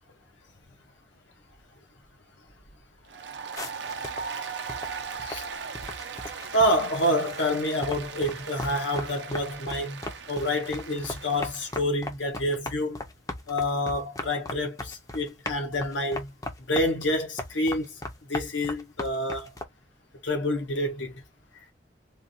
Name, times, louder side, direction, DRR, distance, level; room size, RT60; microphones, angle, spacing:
Applause, 3.1-11.8, right 5 dB, 70° right, 0.6 m, -38 dB
sound 1, 3.6-7.6 7.8-19.6, left 2 dB, 20° left, 0.6 m, -38 dB
voice 1, 6.5-10.0 10.3-13.0 13.5-16.3 16.6-18.0 18.3-19.5 20.2-21.2, left 1 dB, 80° left, 1.2 m, -28 dB
3.5 x 2.3 x 2.6 m
head